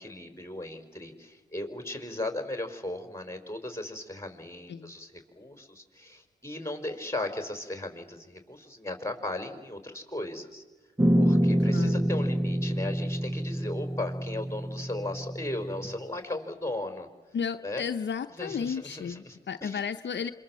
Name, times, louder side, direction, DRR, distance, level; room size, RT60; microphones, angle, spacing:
voice 1, 0.0-10.6 11.1-17.1 17.6-17.8 18.4-19.8, left 2 dB, 15° left, 6 dB, 4.8 m, -37 dB
sound 1, 11.0-16.0, equal, 15° right, 1.0 m, -27 dB
voice 2, 11.6-12.1 17.3-20.3, left 6 dB, 70° left, 7 dB, 0.8 m, -33 dB
26.5 x 24.0 x 7.6 m, 1.2 s
cardioid pair, 55°, 19 cm